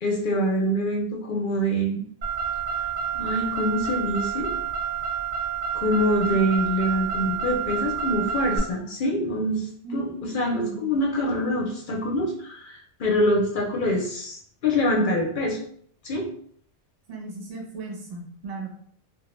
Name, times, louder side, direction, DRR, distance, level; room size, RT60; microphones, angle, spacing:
voice 1, 0.0-2.0 2.8-4.5 5.7-15.6 16.0-16.3, equal, 60° left, 0 dB, 0.6 m, -25 dB
Car, 2.2-8.6, right 7 dB, 85° right, 0.9 m, -29 dB
voice 2, 9.8-10.8 17.1-18.7, right 3 dB, 40° right, -1 dB, 0.7 m, -36 dB
2.2 x 2.1 x 3.0 m, 0.62 s
omnidirectional pair, 1.2 m